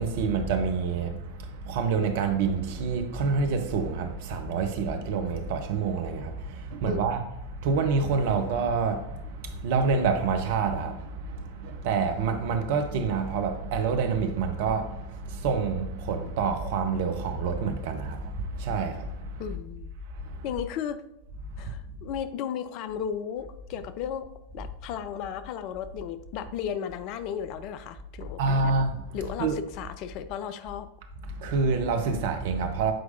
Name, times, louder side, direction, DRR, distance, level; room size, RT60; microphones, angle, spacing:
voice 1, 0.0-7.3 7.6-19.5 20.2-20.4 21.7-21.8 28.4-29.6 31.3-32.9, right 5 dB, 50° right, 0.7 m, -27 dB
voice 2, 19.4-19.9 20.4-21.0 21.6-28.7 29.1-30.9, left 8 dB, 40° left, 0.4 m, -35 dB
7.7 x 4.6 x 2.6 m
figure-of-eight pair, 90°, 0 cm